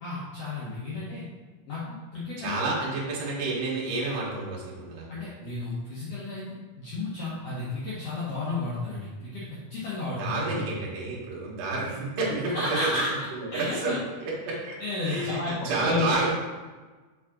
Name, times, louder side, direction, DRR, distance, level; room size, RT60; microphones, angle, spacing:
voice 1, 0.0-1.2 1.7-2.7 5.1-6.4 6.8-10.6 12.5-13.1 13.5-14.0 14.8-16.3, left 2 dB, 75° left, -8 dB, 1.4 m, -32 dB
voice 2, 2.4-5.1 10.2-12.9 13.3-13.9 14.2-14.7 15.0-15.4 15.6-16.3, right 3 dB, 65° right, -4 dB, 2.8 m, -30 dB
7.3 x 3.9 x 3.7 m, 1.3 s
omnidirectional pair, 4.4 m